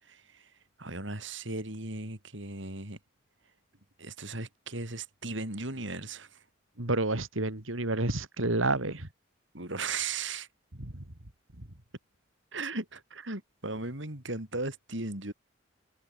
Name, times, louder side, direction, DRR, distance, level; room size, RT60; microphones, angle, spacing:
voice 1, 0.0-0.5 0.8-3.0 4.0-6.4 9.5-10.5 12.5-15.3, right 3 dB, 65° right, 4.6 m, -37 dB
voice 2, 6.8-9.1 10.8-10.9, right 2 dB, 85° right, 3.4 m, -29 dB
head